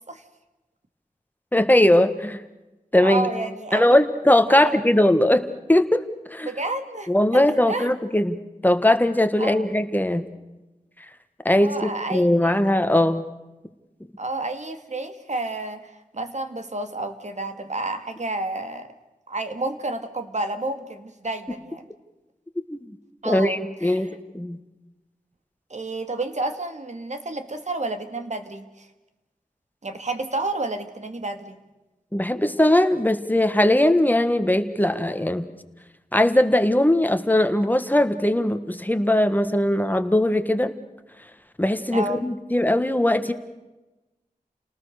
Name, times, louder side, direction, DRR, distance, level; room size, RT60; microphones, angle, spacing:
voice 1, 1.5-2.4 2.9-3.3 3.7-6.0 6.3-6.5 7.1-8.4 8.6-10.2 11.4-13.2 22.6-22.8 23.2-24.1 24.3-24.6 32.1-35.5 36.1-40.7 41.6-43.3, left 1 dB, 10° left, 9 dB, 1.6 m, -20 dB
voice 2, 3.0-4.0 4.5-4.7 6.4-7.9 9.4-9.7 11.6-12.6 14.2-18.9 19.3-21.8 23.2-24.2 25.7-28.9 29.8-31.6 41.9-42.2, right 2 dB, 55° right, 8 dB, 2.1 m, -30 dB
30.0 x 19.0 x 6.6 m, 1.1 s
wide cardioid pair, 85°, 14 cm